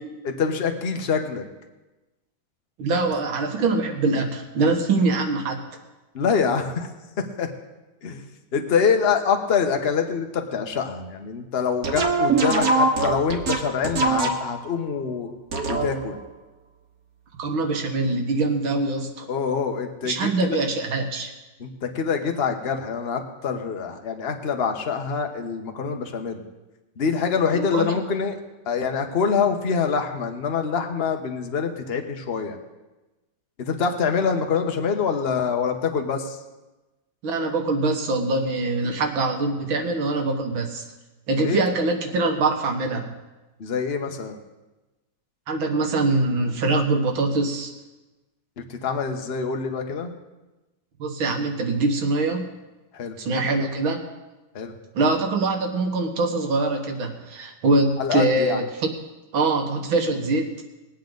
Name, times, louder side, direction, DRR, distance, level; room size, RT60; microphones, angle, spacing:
voice 1, 0.2-1.4 6.1-6.9 7.4-7.5 8.0-8.3 8.5-15.3 15.7-16.2 19.3-20.6 21.6-26.4 27.0-28.4 28.7-32.6 33.6-36.4 41.4-41.6 43.6-44.4 48.6-50.1 52.9-53.1 54.5-54.7 58.0-58.6, left 6 dB, 40° left, 4 dB, 1.1 m, -25 dB
voice 2, 2.8-5.6 17.4-19.3 20.0-21.3 27.5-27.9 37.2-40.8 41.3-43.1 45.5-47.7 51.0-52.5 53.2-54.0 54.9-58.9 59.3-60.5, right 3 dB, 85° right, 3 dB, 2.3 m, -23 dB
sound 1, 11.8-14.7 15.5-16.2, right 3 dB, 50° right, 1.6 m, -22 dB
21.5 x 8.5 x 4.0 m, 1.1 s
omnidirectional pair, 2.1 m